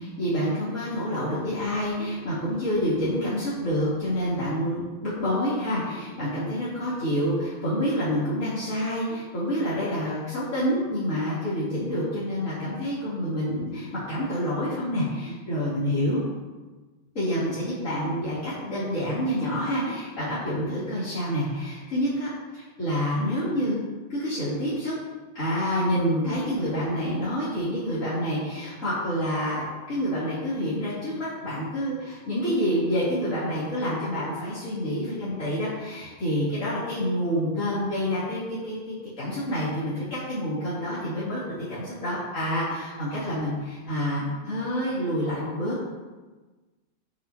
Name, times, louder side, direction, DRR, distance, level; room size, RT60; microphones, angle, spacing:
voice 1, 0.0-16.2 17.2-23.8 24.1-24.9 25.4-45.8, equal, 85° left, -11 dB, 3.4 m, -28 dB
17.5 x 6.4 x 2.8 m, 1.2 s
omnidirectional pair, 1.3 m